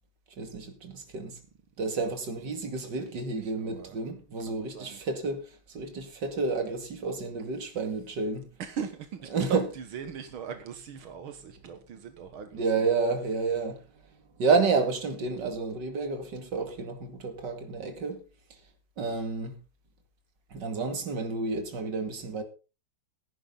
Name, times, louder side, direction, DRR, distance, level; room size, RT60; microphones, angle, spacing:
voice 1, 0.4-1.4 1.8-8.5 9.3-9.6 12.5-13.8 14.4-18.2 19.0-19.6 20.5-22.4, right 4 dB, 60° right, 2.9 m, -30 dB
voice 2, 3.3-4.0 4.5-5.0 8.6-12.9, right 6 dB, 85° right, 2.1 m, -38 dB
16.5 x 10.5 x 3.9 m
omnidirectional pair, 2.2 m